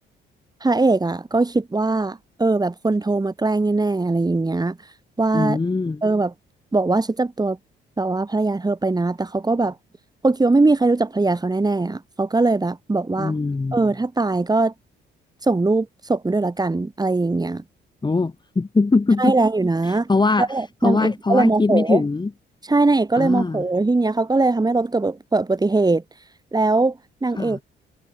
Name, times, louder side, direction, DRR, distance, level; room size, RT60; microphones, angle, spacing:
voice 1, 0.6-4.8 5.2-5.6 6.0-6.3 6.7-7.6 8.0-9.8 10.2-13.4 13.7-14.7 15.4-17.6 19.2-20.1 20.4-22.0 22.7-26.0 26.5-27.6, right 3 dB, 20° right, 5.2 m, -21 dB
voice 2, 5.3-6.0 13.2-13.8 18.0-19.4 19.9-20.5 20.8-22.3 23.2-23.6 27.4-27.6, left 3 dB, 20° left, 2.2 m, -21 dB
cardioid pair, 90°, 20 cm